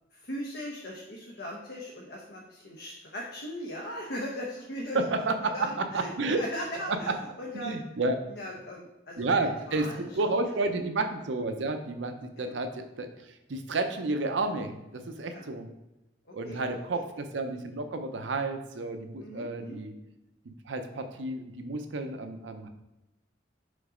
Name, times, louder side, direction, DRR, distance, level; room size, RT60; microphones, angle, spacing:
voice 1, 0.1-5.0 5.5-6.1 6.4-7.1 7.4-7.8 8.3-10.1 10.8-10.9 12.3-12.6 15.3-15.5 16.3-16.6 16.9-17.0 19.2-19.8, equal, 60° left, -2 dB, 0.8 m, -39 dB
voice 2, 4.9-6.4 6.9-7.1 7.5-8.2 9.2-15.7 16.3-19.9 20.4-22.7, right 3 dB, 80° right, 7 dB, 0.6 m, -31 dB
5.2 x 3.9 x 5.0 m, 0.94 s
head